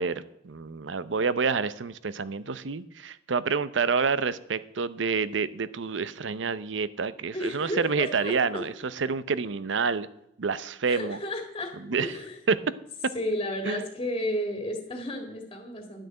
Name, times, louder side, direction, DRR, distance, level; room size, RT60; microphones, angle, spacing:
voice 1, 0.0-10.1 10.4-11.2 11.8-12.1 12.5-12.6 13.7-13.8, right 5 dB, 85° right, 16 dB, 0.7 m, -28 dB
voice 2, 7.3-8.6 10.9-11.7 12.0-12.4 13.1-16.1, left 1 dB, 25° left, 3 dB, 2.0 m, -32 dB
11.0 x 6.6 x 8.7 m, 0.80 s
head